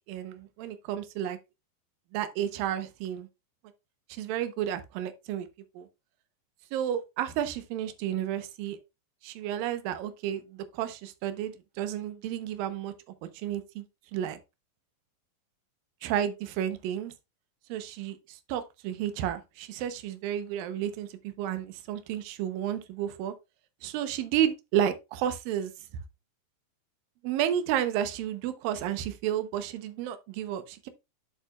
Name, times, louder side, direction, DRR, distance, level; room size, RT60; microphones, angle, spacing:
voice 1, 0.1-1.4 2.1-3.3 4.1-5.5 5.8-5.9 6.7-8.8 9.2-12.9 13.3-13.8 14.1-14.4 16.0-17.1 17.7-23.3 23.8-25.7 27.2-30.9, right 10 dB, 80° right, 2.6 m, -31 dB
8.2 x 7.5 x 2.3 m
omnidirectional pair, 4.1 m